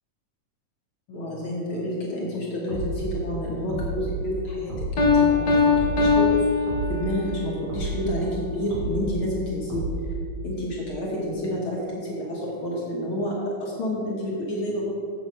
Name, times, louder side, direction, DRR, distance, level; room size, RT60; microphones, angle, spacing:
voice 1, 1.1-9.9 10.4-14.9, left 1 dB, 50° left, -4 dB, 1.7 m, -29 dB
sound 1, 2.7-3.1 3.7-4.1 4.7-5.1 5.7-6.1 6.7-7.1 7.7-8.1 8.7-9.1 9.7-10.1, right 1 dB, 45° right, 2.8 m, -31 dB
Piano, 5.0-7.4, left 5 dB, 75° left, 0.9 m, -21 dB
8.0 x 7.3 x 5.5 m, 2.3 s
omnidirectional pair, 3.8 m